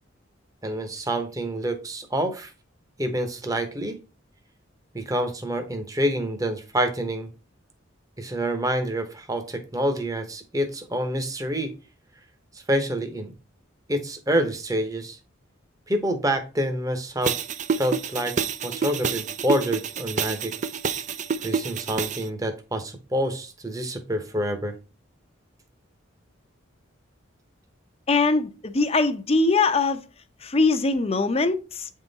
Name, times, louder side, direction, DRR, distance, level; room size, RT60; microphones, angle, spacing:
voice 1, 0.6-2.5 3.0-4.0 4.9-7.3 8.2-11.7 12.7-13.3 13.9-15.2 15.9-17.4 17.8-18.4 18.6-20.5 21.4-24.7, right 1 dB, 15° right, 0.9 m, -27 dB
sound 1, 17.2-22.2, right 6 dB, 40° right, 0.4 m, -28 dB
voice 2, 28.1-30.0 30.4-31.9, left 3 dB, 30° left, 0.6 m, -22 dB
8.7 x 3.7 x 4.0 m
head